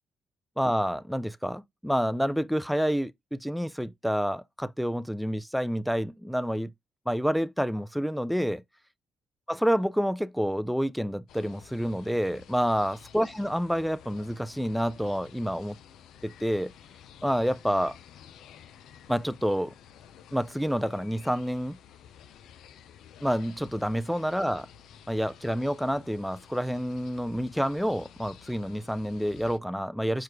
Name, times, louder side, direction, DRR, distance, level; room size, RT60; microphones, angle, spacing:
voice 1, 0.6-6.7 7.1-8.6 9.5-15.8 16.2-16.7 17.2-18.0 19.1-19.7 20.3-21.8 23.2-24.7 25.1-30.2, equal, ahead, 0.4 m, -28 dB
sound 1, 11.3-29.6, left 9 dB, 80° left, 0.5 m, -52 dB
4.8 x 2.4 x 4.5 m
cardioid pair, 90°, 0 cm